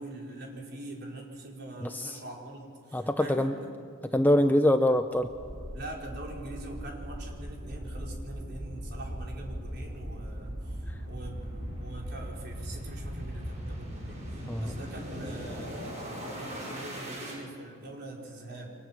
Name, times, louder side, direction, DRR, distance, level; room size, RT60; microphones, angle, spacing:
voice 1, 0.0-3.5 5.7-18.7, right 1 dB, 50° right, -1 dB, 4.9 m, -43 dB
voice 2, 1.8-2.2 2.9-3.6 4.1-5.3 14.5-14.7, left 1 dB, 10° left, 7 dB, 0.6 m, -24 dB
sound 1, 5.2-17.4, equal, 30° right, 6.9 m, -39 dB
29.5 x 24.0 x 7.5 m, 2.4 s
head